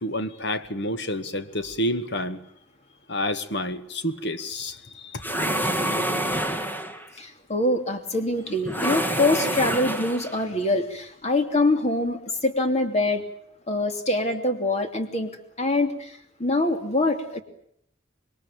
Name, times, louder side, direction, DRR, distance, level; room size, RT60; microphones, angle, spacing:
voice 1, 0.0-2.4 3.1-5.2, left 1 dB, 60° left, 1.7 m, -29 dB
sound 1, 5.2-7.1 8.6-10.4, right 1 dB, 10° left, 1.9 m, -27 dB
voice 2, 7.2-13.2 13.7-15.3 15.6-17.4, left 2 dB, 35° left, 3.0 m, -24 dB
26.5 x 21.5 x 9.1 m
head